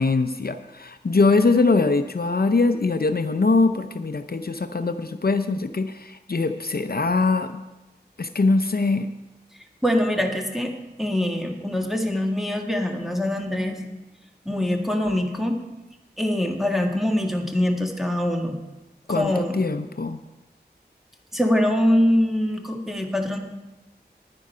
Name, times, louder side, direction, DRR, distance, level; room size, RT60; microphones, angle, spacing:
voice 1, 0.0-7.6 8.2-9.1 19.1-20.2, left 3 dB, 60° left, 8 dB, 0.6 m, -22 dB
voice 2, 9.8-10.7 11.0-13.8 14.5-15.6 16.2-18.6 19.2-19.6 21.3-23.4, left 1 dB, ahead, 1 dB, 1.7 m, -23 dB
10.5 x 9.8 x 5.6 m, 1.0 s
wide cardioid pair, 45°, 18 cm